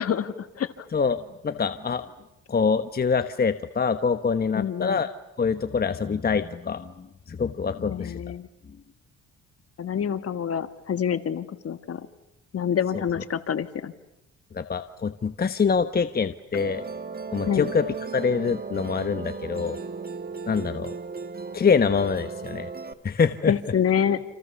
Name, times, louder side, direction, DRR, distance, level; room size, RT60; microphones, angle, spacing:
voice 1, 0.0-0.9 4.5-5.0 7.8-8.5 9.8-12.0 12.5-13.9 17.5-17.7 23.5-24.2, left 8 dB, 50° left, 10 dB, 1.9 m, -27 dB
voice 2, 0.9-2.0 2.5-5.1 5.4-8.2 14.5-16.8 17.3-17.9 18.1-19.8 20.5-20.9 21.5-22.7 23.0-23.6, left 5 dB, 30° left, 9 dB, 1.2 m, -25 dB
Musical instrument, 16.5-22.9, right 5 dB, 30° right, 1.9 m, -36 dB
29.5 x 28.5 x 7.1 m, 0.90 s
cardioid pair, 90°, 30 cm